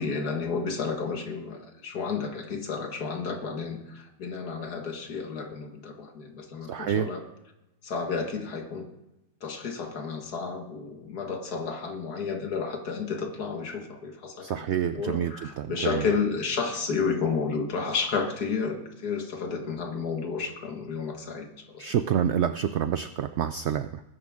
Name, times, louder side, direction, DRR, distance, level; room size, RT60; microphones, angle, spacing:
voice 1, 0.0-7.2 7.8-8.9 9.4-14.7 14.9-21.9, left 5 dB, 70° left, 4 dB, 2.2 m, -31 dB
voice 2, 6.7-7.1 14.4-16.0 21.8-24.0, right 9 dB, 85° right, 11 dB, 0.6 m, -28 dB
20.0 x 10.5 x 3.6 m, 0.95 s
omnidirectional pair, 1.8 m